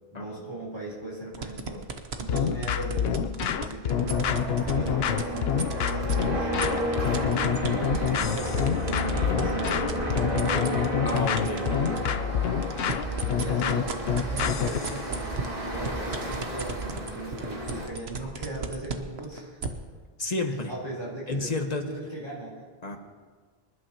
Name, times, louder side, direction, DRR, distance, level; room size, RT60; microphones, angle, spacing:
voice 1, 0.1-4.5 4.7-12.0 12.5-19.6 20.7-21.5 21.8-22.6, right 1 dB, 25° right, -6 dB, 3.9 m, -38 dB
sound 1, 1.3-6.2 6.6-12.1 12.5-19.7, right 5 dB, 80° right, 1.3 m, -35 dB
sound 2, 2.3-14.9, left 8 dB, 75° left, 0.8 m, -27 dB
sound 3, 3.9-17.9, equal, 60° right, 2.3 m, -32 dB
voice 2, 11.0-12.0 20.2-20.7 21.3-21.9 22.8-23.0, left 2 dB, 40° left, 4 dB, 1.3 m, -31 dB
25.5 x 11.5 x 3.0 m, 1.5 s
omnidirectional pair, 1.0 m